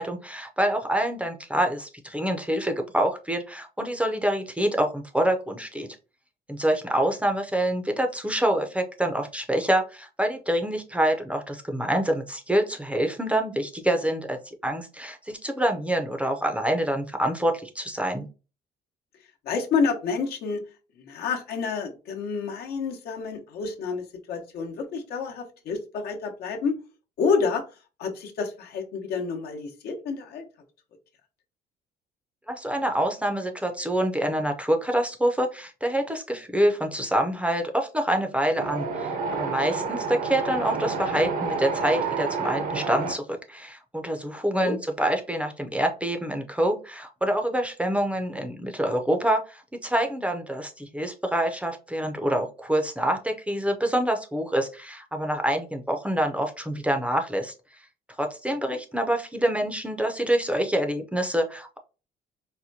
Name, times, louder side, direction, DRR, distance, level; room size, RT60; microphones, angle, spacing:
voice 1, 0.0-5.9 6.5-18.2 32.5-57.5 58.2-61.8, right 1 dB, 5° right, 4 dB, 0.5 m, -26 dB
voice 2, 19.4-20.6 21.0-26.8 27.2-27.6 28.0-30.4 44.6-44.8 58.7-58.8, left 5 dB, 70° left, 3 dB, 0.9 m, -29 dB
Wind, 38.6-43.1, right 4 dB, 55° right, 0.7 m, -29 dB
4.2 x 2.2 x 2.7 m, 0.32 s
cardioid pair, 110°, 17 cm